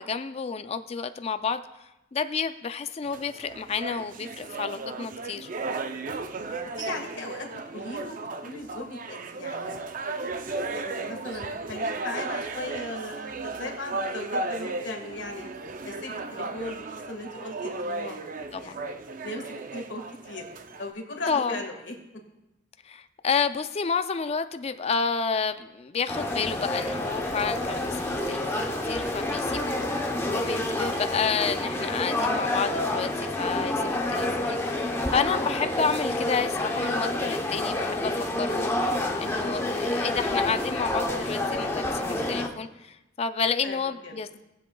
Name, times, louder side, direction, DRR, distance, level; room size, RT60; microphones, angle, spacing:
voice 1, 0.0-1.6 2.1-5.5 18.5-18.8 21.3-21.6 22.8-44.4, left 5 dB, 30° left, 10 dB, 0.4 m, -30 dB
sound 1, 3.0-20.9, right 3 dB, 45° right, 0.5 m, -35 dB
voice 2, 6.7-9.7 10.0-10.3 10.6-15.4 15.8-18.2 18.6-19.0 19.2-19.4 19.7-20.4 20.8-21.9 29.4-29.7 43.6-44.1, left 2 dB, 65° left, 3 dB, 1.7 m, -38 dB
sound 2, 26.1-42.5, left 1 dB, 15° left, 0.8 m, -28 dB
sound 3, 26.8-31.8, right 3 dB, 80° right, 1.3 m, -48 dB
20.5 x 7.6 x 2.3 m, 0.96 s
head